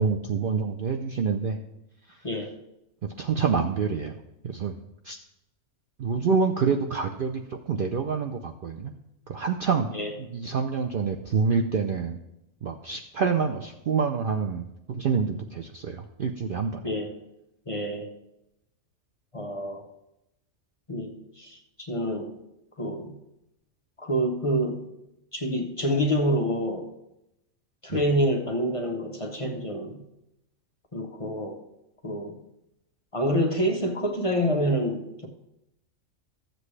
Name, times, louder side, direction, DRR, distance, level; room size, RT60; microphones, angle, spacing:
voice 1, 0.0-1.6 3.2-4.1 4.4-4.8 5.0-5.2 6.0-8.9 9.3-9.9 10.2-12.2 12.6-16.8 27.9-28.0, right 5 dB, 55° right, 3 dB, 0.6 m, -27 dB
voice 2, 16.8-17.2 17.7-18.1 19.3-19.8 20.9-22.4 22.8-23.1 24.0-24.8 25.3-26.9 27.8-30.0 30.9-31.6 32.0-32.3 33.1-35.3, equal, 30° left, 2 dB, 0.9 m, -27 dB
13.5 x 7.8 x 3.2 m, 0.88 s
omnidirectional pair, 1.4 m